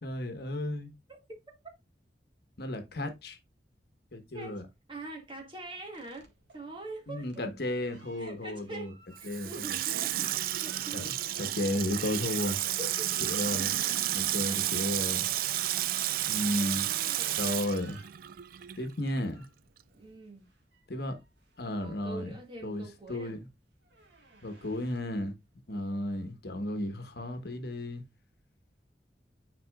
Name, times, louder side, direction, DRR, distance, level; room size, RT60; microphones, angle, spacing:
voice 1, 0.0-0.9 2.6-3.4 4.1-4.6 7.1-8.9 9.2-9.5 10.9-12.6 13.2-13.7 14.1-15.3 16.2-16.9 17.4-18.1 18.8-19.4 20.9-21.2 21.6-22.4 22.6-22.8 23.1-23.4 24.4-25.3 25.7-28.0, left 1 dB, 60° left, 1.2 m, -33 dB
voice 2, 4.9-7.3 8.2-8.9 9.2-11.2 12.8-13.3 16.4-17.4 19.9-20.5 21.7-23.4 25.7-26.0, right 2 dB, 30° right, 1.9 m, -44 dB
sound 1, 5.9-15.3 15.9-22.4 22.8-23.1 23.4-25.3, right 3 dB, 85° right, 1.7 m, -56 dB
Water tap faucet / Sink (filling or washing), 9.2-18.9 19.2-19.3, right 13 dB, 55° right, 0.3 m, -31 dB
9.4 x 4.4 x 2.3 m
head